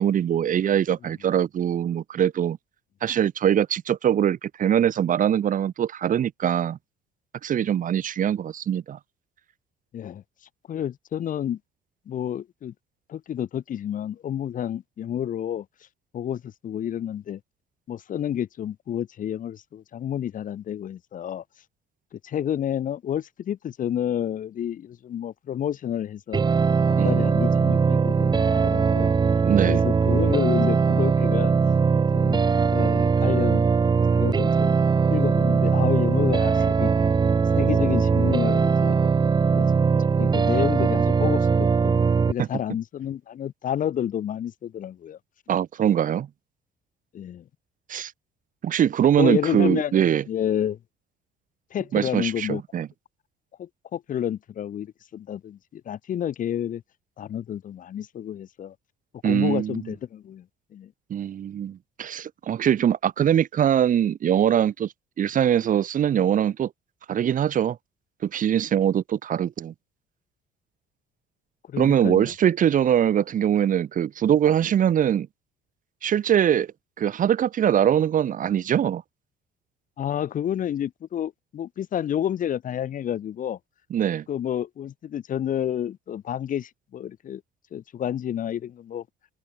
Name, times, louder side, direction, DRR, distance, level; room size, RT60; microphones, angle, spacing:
voice 1, 0.0-2.6 3.0-6.8 7.4-9.0 27.0-27.3 29.4-29.8 42.4-42.5 45.5-46.3 47.9-48.1 48.6-50.2 51.9-52.9 59.2-59.8 61.1-64.9 65.2-66.7 67.1-67.8 68.2-69.7 71.8-75.3 76.0-76.7 77.0-79.0 83.9-84.2, right 9 dB, 50° right, 4.1 m, -22 dB
voice 2, 10.7-11.6 12.1-12.7 13.1-15.7 16.1-17.4 17.9-21.4 22.1-26.4 26.9-29.1 29.6-31.5 32.1-33.7 34.1-34.8 35.1-36.9 37.5-38.9 39.5-39.7 40.2-42.0 42.3-45.2 47.1-47.4 49.2-50.8 51.7-52.6 53.6-56.8 57.2-58.8 59.2-60.5 60.7-60.9 71.7-72.3 80.0-83.6 84.3-87.4 87.7-89.0, left 10 dB, 50° left, 2.2 m, -29 dB
sound 1, 26.3-42.3, right 5 dB, 25° right, 0.9 m, -20 dB
cardioid pair, 110°, 17 cm